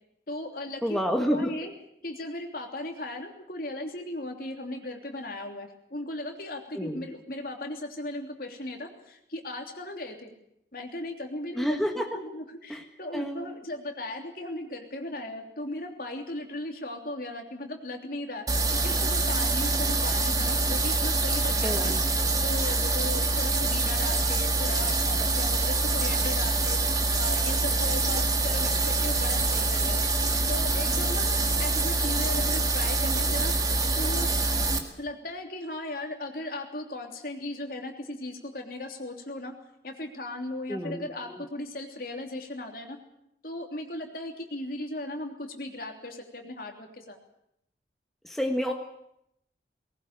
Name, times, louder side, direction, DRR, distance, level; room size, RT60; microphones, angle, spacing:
voice 1, 0.3-1.7 2.0-10.3 10.7-11.8 12.1-18.4 18.7-21.9 22.4-26.8 27.1-30.1 30.5-33.5 33.9-34.3 35.0-39.5 39.8-43.0 43.4-47.2, left 1 dB, 55° left, 3 dB, 3.2 m, -37 dB
voice 2, 0.8-1.5 6.7-7.0 11.6-12.1 12.7-12.8 13.1-13.5 21.6-22.0 40.7-41.4 48.2-48.7, equal, ahead, 2 dB, 1.4 m, -29 dB
sound 1, 18.5-34.8, right 3 dB, 20° right, 2.0 m, -25 dB
19.5 x 18.5 x 8.9 m, 0.77 s
head